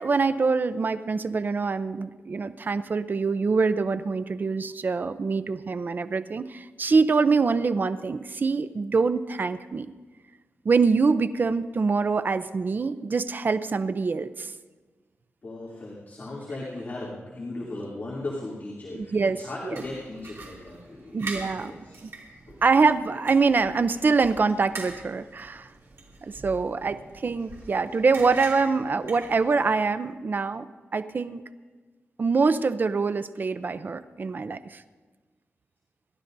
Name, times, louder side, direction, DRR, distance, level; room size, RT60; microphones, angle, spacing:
voice 1, 0.0-9.9 10.6-14.5 18.9-19.8 21.1-21.7 22.6-25.7 26.4-30.7 30.9-31.4 32.2-34.8, right 4 dB, 45° right, 12 dB, 0.5 m, -24 dB
voice 2, 15.4-22.0 22.5-22.6 26.8-27.0, left 2 dB, 45° left, -5 dB, 2.8 m, -37 dB
sound 1, 19.8-29.8, right 3 dB, 70° right, 2.6 m, -43 dB
28.0 x 12.5 x 2.6 m, 1.4 s
wide cardioid pair, 115°, 4 cm